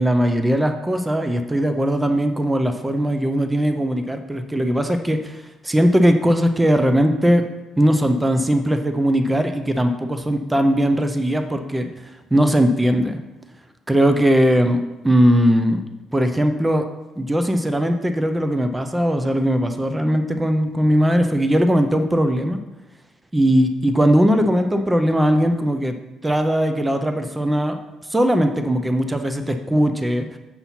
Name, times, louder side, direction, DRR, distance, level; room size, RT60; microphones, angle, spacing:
voice 1, 0.0-5.4 5.6-7.4 7.8-11.9 12.3-13.2 13.9-15.8 16.1-16.8 17.2-22.6 23.3-25.9 26.2-27.8 28.1-30.3, equal, 10° right, 7 dB, 0.4 m, -19 dB
7.0 x 4.1 x 5.6 m, 1.0 s
cardioid pair, 170°, 0 cm